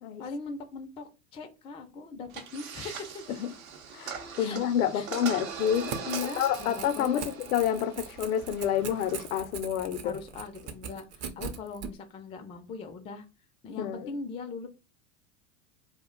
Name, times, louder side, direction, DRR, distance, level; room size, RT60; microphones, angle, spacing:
voice 1, 0.2-3.2 4.4-4.6 4.9-5.1 5.8-7.3 10.0-13.3 13.6-14.7, left 5 dB, 15° left, 0.3 m, -40 dB
sound 1, 2.3-9.4, right 6 dB, 80° right, 0.7 m, -41 dB
voice 2, 3.9-5.9 6.4-10.2 13.8-14.1, left 9 dB, 80° left, 0.5 m, -29 dB
Crackle / Tearing, 5.5-11.9, right 6 dB, 40° right, 0.6 m, -41 dB
2.4 x 2.1 x 3.7 m
hypercardioid pair, 95°, 41 cm